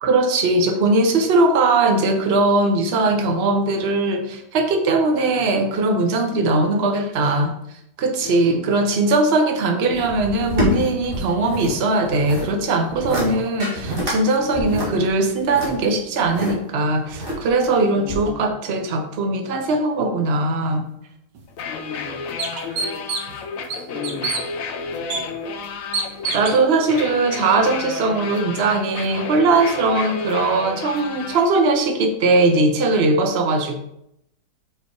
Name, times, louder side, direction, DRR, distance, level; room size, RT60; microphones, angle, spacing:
voice 1, 0.0-7.5 8.0-20.8 26.3-33.8, right 2 dB, 50° right, 5 dB, 0.7 m, -20 dB
voice 2, 8.2-8.8 14.3-15.1 18.0-18.5 21.7-22.2 22.6-23.3 23.9-24.4 24.8-25.3, left 6 dB, 40° left, -5 dB, 1.3 m, -35 dB
sound 1, 9.9-11.7 12.0-12.5 12.9-13.3 13.6-14.2 14.5-16.5 17.1-17.6 18.1-18.2, equal, 30° right, 2.0 m, -27 dB
sound 2, 21.3-21.4 22.0-22.1 22.4-23.4 23.7-24.4 25.1-25.2 25.9-26.6, right 4 dB, 75° right, 1.4 m, -26 dB
sound 3, 21.5-31.5, left 4 dB, 65° left, 0.9 m, -31 dB
5.3 x 4.2 x 4.6 m, 0.79 s
omnidirectional pair, 1.9 m